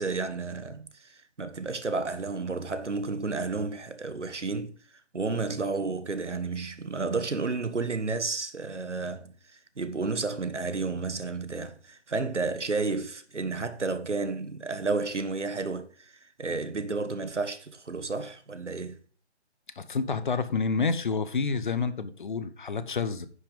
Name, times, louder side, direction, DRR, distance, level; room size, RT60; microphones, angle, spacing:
voice 1, 0.0-4.7 5.1-19.0, right 3 dB, 85° right, 1.5 m, -32 dB
voice 2, 19.8-23.3, left 4 dB, 45° left, 0.9 m, -29 dB
9.9 x 5.9 x 5.2 m
figure-of-eight pair, 155°, 35 cm